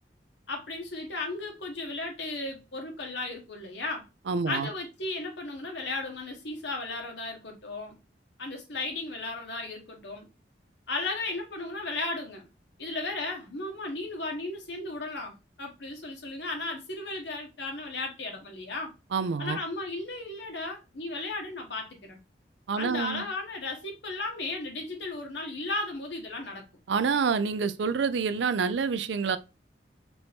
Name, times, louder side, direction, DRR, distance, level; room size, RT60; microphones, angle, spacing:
voice 1, 0.5-4.1 4.5-8.0 8.4-10.3 10.9-12.4 12.8-18.9 19.4-22.2 22.8-26.7, left 2 dB, 80° left, 1.3 m, -35 dB
voice 2, 4.3-4.7 19.1-19.6 22.7-23.3 26.9-29.4, right 5 dB, 85° right, 0.4 m, -27 dB
4.5 x 2.7 x 3.4 m
head